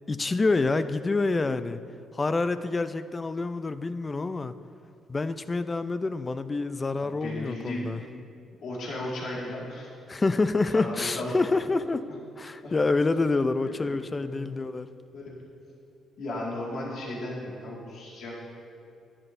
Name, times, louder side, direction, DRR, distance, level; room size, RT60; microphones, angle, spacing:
voice 1, 0.1-1.8 2.1-4.5 5.1-8.0 10.1-12.1 12.4-14.9, left 3 dB, 25° left, 12 dB, 0.4 m, -27 dB
voice 2, 6.9-8.0 8.6-9.9 10.7-11.4 12.6-12.7 13.6-14.5 15.1-15.4 16.2-18.3, left 1 dB, 70° left, -4 dB, 1.9 m, -36 dB
11.0 x 9.9 x 2.6 m, 2.4 s
cardioid pair, 90°, 0 cm